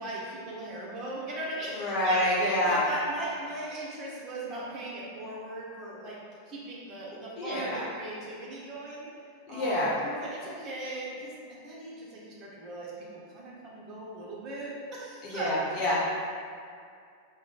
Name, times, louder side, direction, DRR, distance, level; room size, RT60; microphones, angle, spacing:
voice 1, 0.0-6.2 6.5-9.1 9.5-11.4 11.6-15.5, right 1 dB, 30° right, -5 dB, 1.0 m, -39 dB
voice 2, 1.7-2.8 7.4-7.8 9.5-9.9 15.3-16.0, left 1 dB, 40° left, -6 dB, 1.1 m, -27 dB
3.6 x 2.2 x 3.9 m, 2.3 s
figure-of-eight pair, 90°, 0 cm